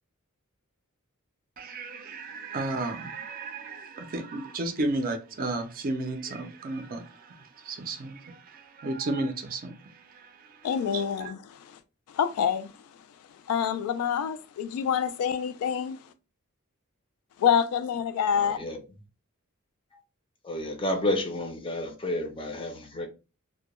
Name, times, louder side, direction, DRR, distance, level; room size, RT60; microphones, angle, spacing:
voice 1, 1.6-11.3, right 2 dB, 40° right, 0.4 m, -34 dB
voice 2, 10.6-11.8 12.1-12.7 13.5-16.1 17.4-18.6, left 8 dB, 85° left, 0.3 m, -27 dB
voice 3, 18.4-18.8 20.4-23.1, left 1 dB, 25° left, 0.5 m, -30 dB
2.1 x 2.1 x 2.9 m
head